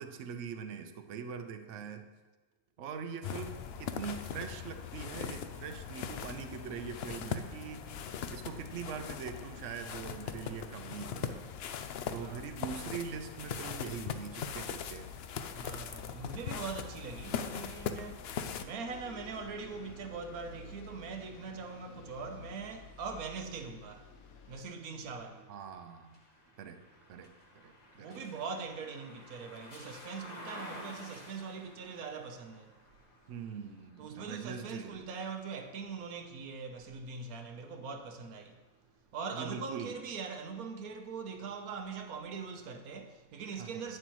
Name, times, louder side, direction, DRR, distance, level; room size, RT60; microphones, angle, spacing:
voice 1, 0.0-2.1 2.8-7.8 8.3-11.4 12.1-15.1 25.5-26.2 26.6-26.8 27.1-27.7 28.0-28.2 33.3-34.9 39.3-40.0 43.6-43.9, right 6 dB, 65° right, 1.0 m, -42 dB
sound 1, 3.2-18.6, left 7 dB, 65° left, 0.6 m, -40 dB
voice 2, 15.5-25.5 27.9-32.8 34.0-38.6 39.1-44.0, right 5 dB, 90° right, 1.3 m, -42 dB
Bus, 18.9-24.6, left 4 dB, 80° left, 1.2 m, -51 dB
sound 2, 20.6-36.6 37.1-38.4, left 1 dB, 30° left, 1.3 m, -54 dB
11.0 x 8.8 x 3.0 m
omnidirectional pair, 1.5 m